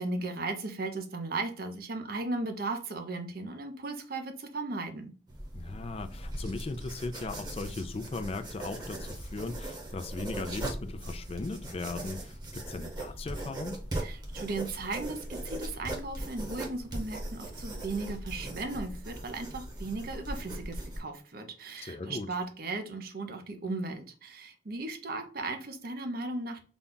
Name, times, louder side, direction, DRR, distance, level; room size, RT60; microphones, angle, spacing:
voice 1, 0.0-5.1 14.0-26.6, right 3 dB, 55° right, 0.7 m, -36 dB
sound 1, 5.3-21.0, right 1 dB, 25° right, 1.0 m, -39 dB
voice 2, 5.5-13.8 21.8-22.3, left 3 dB, 35° left, 0.4 m, -38 dB
4.0 x 2.3 x 3.7 m
head